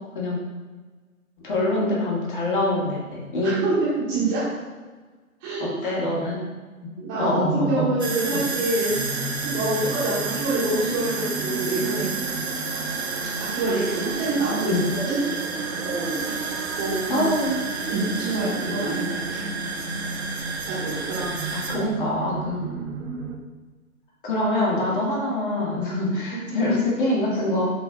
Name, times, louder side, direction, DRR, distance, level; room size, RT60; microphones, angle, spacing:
voice 1, 1.4-3.5 5.6-6.4 7.2-7.9 8.3-8.4 14.6-14.9 17.1-17.7 21.5-22.6 24.2-27.7, left 1 dB, 35° left, -4 dB, 1.8 m, -24 dB
voice 2, 3.4-4.5 5.4-5.7 7.0-12.1 13.4-15.2 15.8-16.3 16.6-17.3 17.8-19.4 20.7-21.6 22.5-22.6 26.2-26.4, right 2 dB, 15° right, -9 dB, 1.3 m, -27 dB
sound 1, 8.0-21.8, right 4 dB, 45° right, 0.9 m, -31 dB
sound 2, 8.9-23.4, right 3 dB, 70° right, 1.0 m, -34 dB
6.7 x 3.4 x 4.7 m, 1.3 s
figure-of-eight pair, 145°, 43 cm